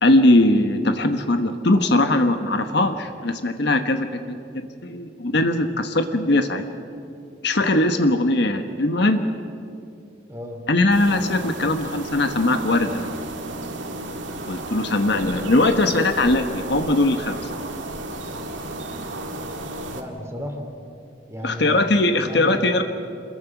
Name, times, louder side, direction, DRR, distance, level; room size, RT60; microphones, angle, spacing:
voice 1, 0.0-4.4 4.8-6.6 7.4-9.2 10.7-13.1 14.5-17.5 21.4-22.8, left 2 dB, 60° left, 7 dB, 1.2 m, -20 dB
voice 2, 10.3-10.6 19.9-20.7 21.3-21.9 22.2-22.7, equal, 15° right, 3 dB, 2.8 m, -34 dB
sound 1, 10.9-20.0, right 2 dB, 75° right, 2.0 m, -33 dB
27.0 x 21.5 x 6.0 m, 2.5 s
head